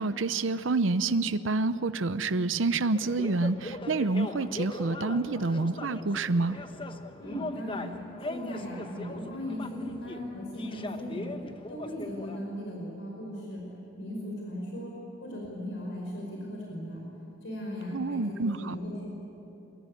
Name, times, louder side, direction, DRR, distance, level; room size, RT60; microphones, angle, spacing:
voice 1, 0.0-6.6 17.9-18.7, right 3 dB, 85° right, 13 dB, 0.7 m, -28 dB
sound 1, 2.9-12.4, left 2 dB, 25° left, 1.1 m, -40 dB
voice 2, 7.2-7.9 8.3-11.3 11.7-13.6 14.0-14.9 15.2-17.1 17.4-19.1, equal, 75° left, -2 dB, 5.4 m, -37 dB
24.5 x 21.5 x 9.9 m, 3.0 s
head